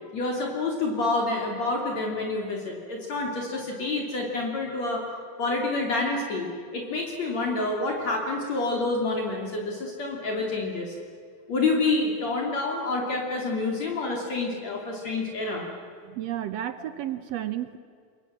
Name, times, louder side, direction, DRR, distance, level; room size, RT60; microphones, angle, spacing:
voice 1, 0.1-5.1 5.4-6.5 6.7-11.0 11.5-15.7, left 3 dB, 50° left, 0 dB, 3.8 m, -28 dB
voice 2, 16.1-17.8, right 12 dB, 70° right, 11 dB, 1.6 m, -32 dB
27.0 x 23.5 x 7.4 m, 2.3 s
omnidirectional pair, 4.0 m